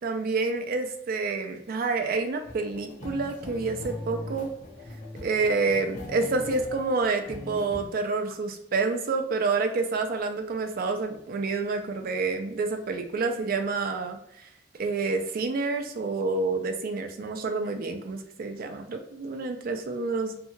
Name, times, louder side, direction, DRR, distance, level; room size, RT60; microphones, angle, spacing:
voice 1, 0.0-4.5 5.2-14.2 14.8-20.4, right 3 dB, 50° right, 5 dB, 0.4 m, -28 dB
sound 1, 2.4-7.9, left 1 dB, 40° left, 0.6 m, -40 dB
2.7 x 2.3 x 2.8 m, 0.74 s
head